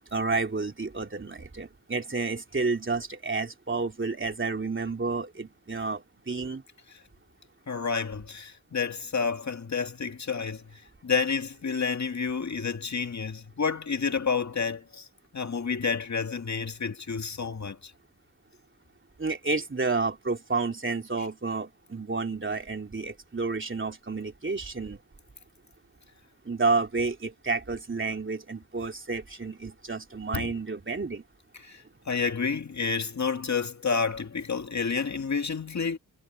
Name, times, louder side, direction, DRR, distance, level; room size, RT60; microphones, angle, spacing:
voice 1, 0.1-6.6 19.2-25.0 26.4-31.2, right 4 dB, 35° right, 3.3 m, -30 dB
voice 2, 7.7-15.1 15.3-17.9 30.3-30.5 31.6-36.0, left 5 dB, 55° left, 2.1 m, -30 dB
wide cardioid pair, 85°, 34 cm